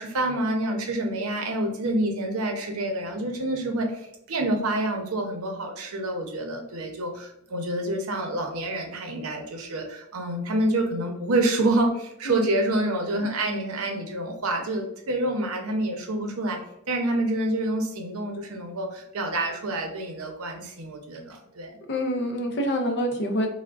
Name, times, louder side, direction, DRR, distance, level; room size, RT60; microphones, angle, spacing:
voice 1, 0.0-16.6 16.9-21.8, right 1 dB, 80° right, 3 dB, 0.6 m, -27 dB
voice 2, 21.9-23.5, equal, 55° left, 4 dB, 0.5 m, -26 dB
3.4 x 2.1 x 2.3 m, 0.78 s
head